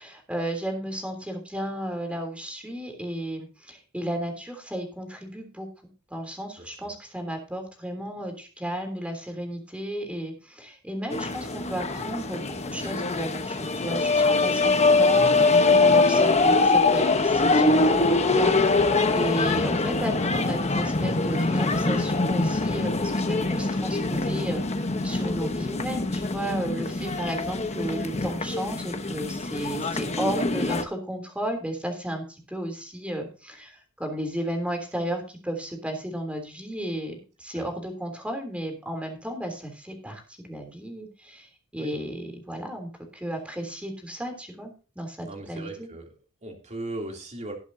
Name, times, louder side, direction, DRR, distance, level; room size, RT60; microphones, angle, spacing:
voice 1, 0.0-5.7 6.1-45.9, right 1 dB, 5° right, 4 dB, 3.3 m, -33 dB
sound 1, 11.1-30.8, left 3 dB, 30° left, 1.1 m, -23 dB
voice 2, 27.0-27.3 37.5-37.6 41.8-42.0 45.2-47.6, right 2 dB, 30° right, 1 dB, 3.2 m, -38 dB
19.0 x 8.0 x 2.8 m, 0.34 s
head